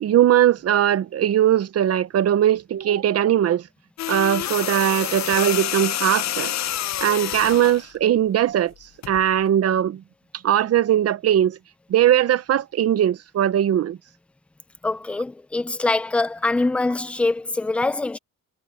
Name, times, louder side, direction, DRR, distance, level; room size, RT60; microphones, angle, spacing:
voice 1, 0.0-3.6 4.1-6.5 7.0-8.7 9.1-10.0 10.4-11.6 11.9-14.0, right 11 dB, 50° right, 0.7 m, -20 dB
sound 1, 4.0-7.8 9.0-9.2, left 12 dB, 55° left, 0.6 m, -28 dB
voice 2, 14.8-18.2, left 2 dB, 5° left, 0.4 m, -24 dB
wide cardioid pair, 180°, 33 cm